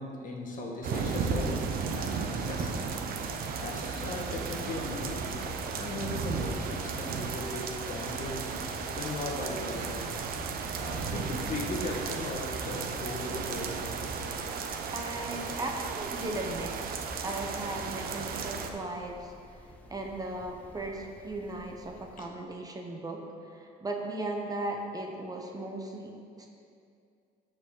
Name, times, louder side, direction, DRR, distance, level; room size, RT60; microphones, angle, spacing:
voice 1, 0.0-2.9 3.5-10.0 10.7-13.8 22.2-22.3, left 2 dB, 50° left, 0 dB, 1.4 m, -38 dB
sound 1, 0.8-18.7, right 5 dB, 60° right, 0.8 m, -34 dB
sound 2, 4.3-22.3, left 1 dB, 10° left, 0.8 m, -53 dB
voice 2, 14.9-19.6 19.9-26.1 26.4-26.5, right 2 dB, 20° right, 1 dB, 1.0 m, -37 dB
13.5 x 5.0 x 3.8 m, 2.4 s
cardioid pair, 110°, 17 cm